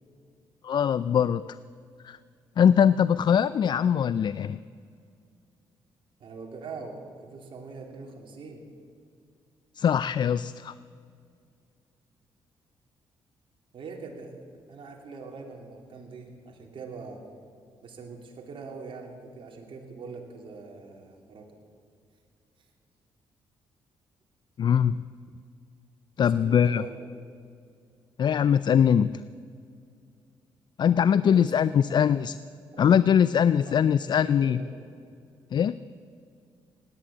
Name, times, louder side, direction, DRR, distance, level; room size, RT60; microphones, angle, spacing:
voice 1, 0.6-1.4 2.0-2.2 2.6-4.6 9.8-10.7 24.6-25.0 26.2-26.8 28.2-29.2 30.8-32.3 32.8-34.6 35.5-35.7, left 8 dB, 50° left, 16 dB, 0.4 m, -22 dB
voice 2, 6.2-8.6 13.7-14.4 14.7-17.2 17.8-21.5 26.2-27.1 31.2-32.1 32.7-33.1 33.5-34.9, right 4 dB, 60° right, 1 dB, 2.9 m, -43 dB
17.0 x 10.5 x 7.5 m, 2.3 s
supercardioid pair, 70°, 10 cm